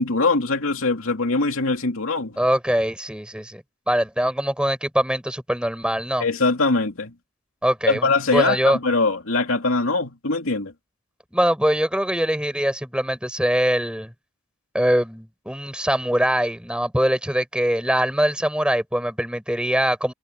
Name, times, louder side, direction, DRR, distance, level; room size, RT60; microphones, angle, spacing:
voice 1, 0.0-2.4 6.2-7.1 7.9-10.7, left 3 dB, 70° left, 2.7 m, -22 dB
voice 2, 2.4-6.2 7.6-8.8 11.3-14.1 14.7-20.1, equal, 5° right, 5.5 m, -23 dB
head